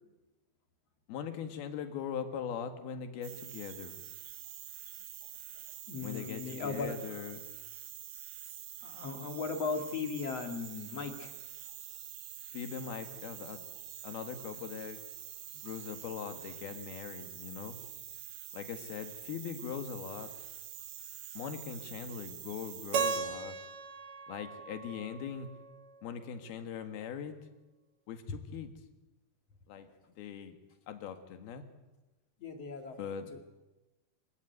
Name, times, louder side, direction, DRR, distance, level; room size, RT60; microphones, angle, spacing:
voice 1, 1.1-4.0 6.0-7.4 12.5-13.6 14.0-15.0 15.6-17.8 18.5-20.3 21.4-23.6 24.3-25.5 26.0-27.4 28.1-28.7 29.7-29.9 30.2-30.6 30.9-31.6 32.9-33.3, left 8 dB, 80° left, 8 dB, 3.7 m, -41 dB
sound 1, 3.2-23.2, right 11 dB, 70° right, 1.4 m, -47 dB
voice 2, 5.9-7.3 8.8-11.3 28.3-28.4 32.4-33.0 33.3-33.4, left 4 dB, 45° left, 6 dB, 2.8 m, -37 dB
Keyboard (musical), 22.9-25.9, right 5 dB, 55° right, 2.6 m, -36 dB
26.5 x 16.0 x 9.3 m, 1.1 s
omnidirectional pair, 4.3 m